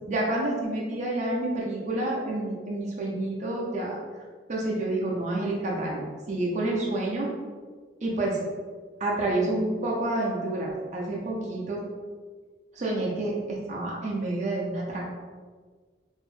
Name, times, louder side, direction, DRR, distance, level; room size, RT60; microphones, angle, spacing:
voice 1, 0.1-4.0 4.5-6.0 6.3-7.3 8.0-8.4 9.0-11.8 12.7-15.1, right 2 dB, 40° right, -4 dB, 0.4 m, -28 dB
2.5 x 2.1 x 3.1 m, 1.5 s
head